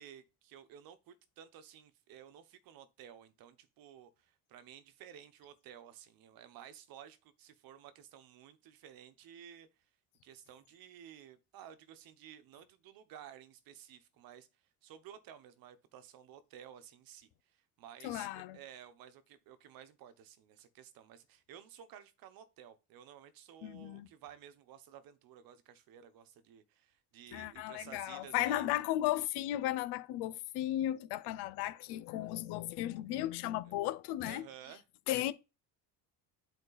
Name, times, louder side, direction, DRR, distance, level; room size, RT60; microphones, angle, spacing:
voice 1, 0.0-9.7 10.2-14.5 14.8-28.7 34.2-34.8, right 9 dB, 60° right, 1.1 m, -54 dB
voice 2, 18.0-18.6 23.6-24.1 27.3-34.4 35.1-35.3, left 14 dB, 85° left, 0.8 m, -35 dB
8.2 x 4.3 x 4.0 m
cardioid pair, 135°, 39 cm